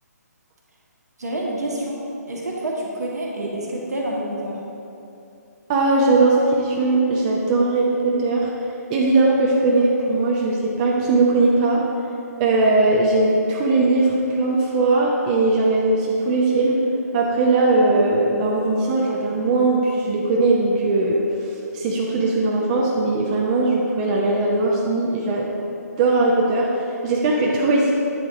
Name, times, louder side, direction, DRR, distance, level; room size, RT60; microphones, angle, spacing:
voice 1, 1.2-4.6, right 1 dB, 70° right, -2 dB, 1.5 m, -28 dB
voice 2, 5.7-8.5 8.9-11.8 12.4-16.8 17.1-21.2 21.7-25.5 26.0-26.7 27.0-27.9, right 2 dB, 25° right, -3 dB, 0.6 m, -19 dB
8.6 x 4.7 x 3.8 m, 2.8 s
figure-of-eight pair, 140°, 9 cm